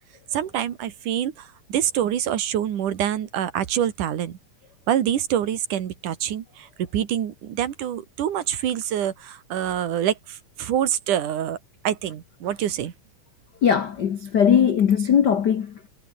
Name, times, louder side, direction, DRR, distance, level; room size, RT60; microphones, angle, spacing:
voice 1, 0.3-4.4 4.9-6.7 6.9-11.6 11.8-12.9, right 10 dB, 80° right, 3.3 m, -26 dB
voice 2, 13.6-15.9, left 8 dB, 70° left, 1.0 m, -20 dB
omnidirectional pair, 3.6 m